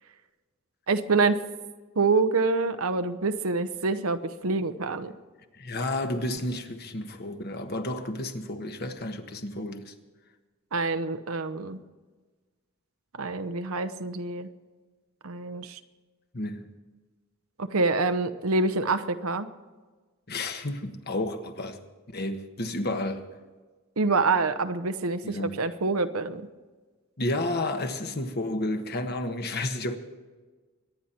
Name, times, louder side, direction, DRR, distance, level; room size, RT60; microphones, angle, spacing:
voice 1, 0.9-1.4 2.0-5.1 10.7-11.8 13.2-14.5 15.2-15.8 17.6-19.5 24.0-26.4, right 3 dB, 85° right, 0.9 m, -26 dB
voice 2, 5.6-9.9 16.3-16.7 20.3-21.8 22.1-23.3 25.2-25.5 27.2-30.0, left 1 dB, 50° left, 1.3 m, -31 dB
24.5 x 10.0 x 4.4 m
head